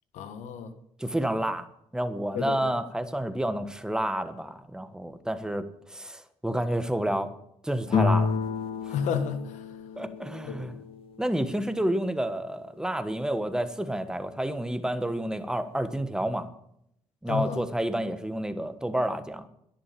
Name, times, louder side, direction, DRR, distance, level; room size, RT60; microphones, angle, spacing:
voice 1, 0.1-0.7 2.3-2.7 8.9-9.6 10.5-10.8 17.3-17.6, left 6 dB, 90° left, 1.5 m, -31 dB
voice 2, 1.0-1.7 1.9-7.3 7.6-8.3 8.9-9.0 10.0-10.8 11.2-16.5 17.2-19.5, right 1 dB, 5° right, 1.4 m, -29 dB
sound 1, 7.9-11.5, left 5 dB, 50° left, 1.6 m, -30 dB
11.0 x 10.5 x 8.5 m
cardioid pair, 90°, 12 cm